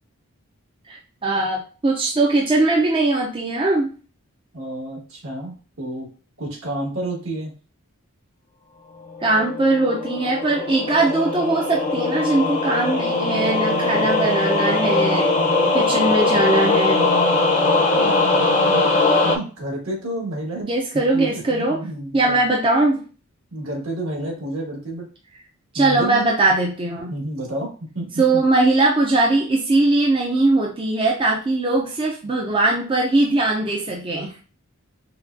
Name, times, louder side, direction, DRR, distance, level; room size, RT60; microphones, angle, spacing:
voice 1, 0.9-3.9 9.2-15.3 15.7-17.1 20.7-21.8 22.1-23.0 25.7-27.1 28.2-34.3, right 2 dB, 25° right, -1 dB, 0.5 m, -20 dB
voice 2, 4.5-6.1 6.4-7.5 18.0-18.9 19.2-20.7 20.9-22.4 23.5-25.1 25.8-26.3 27.1-27.7 27.9-28.2, right 1 dB, 70° right, -2 dB, 1.8 m, -30 dB
sound 1, 9.1-19.4, left 3 dB, 35° left, 0.6 m, -20 dB
5.8 x 2.3 x 2.5 m, 0.37 s
head